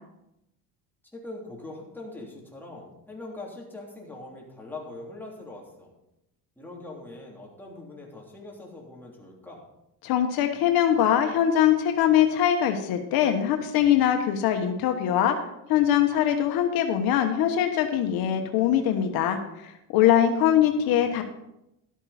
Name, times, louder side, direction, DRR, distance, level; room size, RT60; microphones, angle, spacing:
voice 1, 1.1-5.9 6.6-9.6 20.8-21.2, left 2 dB, 5° left, -3 dB, 3.2 m, -42 dB
voice 2, 10.0-15.4 15.7-21.2, left 10 dB, 75° left, 5 dB, 1.2 m, -22 dB
12.5 x 8.9 x 4.3 m, 0.86 s
cardioid pair, 110°, 37 cm